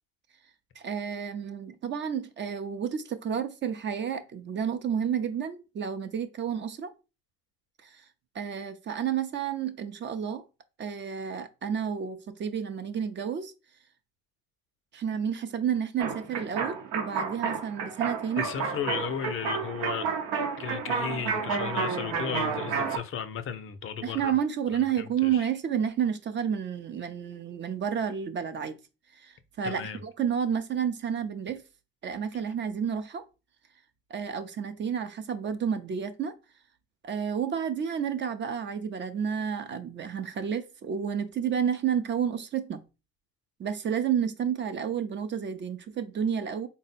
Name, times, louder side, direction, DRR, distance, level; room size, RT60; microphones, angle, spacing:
voice 1, 0.8-6.9 7.8-8.0 8.3-10.4 10.8-13.5 14.9-18.5 24.0-28.8 29.2-31.6 32.0-33.2 34.1-36.3 37.0-42.8 43.6-46.7, right 8 dB, 40° right, 0.5 m, -30 dB
sound 1, 16.0-23.0, right 5 dB, 80° right, 0.8 m, -31 dB
voice 2, 18.4-20.1 20.6-24.3 25.2-25.4 29.6-30.0, left 8 dB, 45° left, 0.5 m, -34 dB
3.6 x 2.1 x 4.1 m
supercardioid pair, 80°, 29 cm